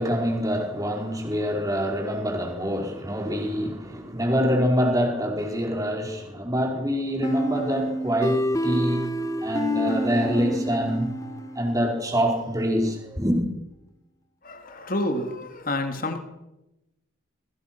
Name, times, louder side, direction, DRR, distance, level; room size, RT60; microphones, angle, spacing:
voice 1, 0.0-9.1 9.4-11.1 11.5-13.4, equal, 15° right, 4.8 m, -25 dB
sound 1, 7.2-11.9, equal, 15° left, 1.6 m, -28 dB
voice 2, 14.4-16.2, left 1 dB, 40° left, 3.0 m, -29 dB
27.5 x 22.0 x 6.2 m
head